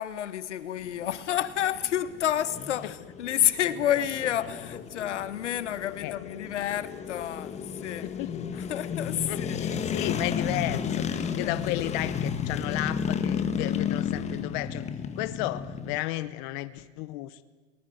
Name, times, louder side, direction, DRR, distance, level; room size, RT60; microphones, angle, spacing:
voice 1, 0.0-8.1 8.5-9.7 10.5-11.0 11.4-11.6, left 11 dB, 85° left, 1.5 m, -30 dB
sound 1, 0.8-16.0, left 7 dB, 20° left, 1.5 m, -33 dB
voice 2, 8.0-8.7 9.3-14.9 15.1-17.4, left 16 dB, 45° left, 1.0 m, -33 dB
23.5 x 19.5 x 7.9 m
hypercardioid pair, 135°, 34 cm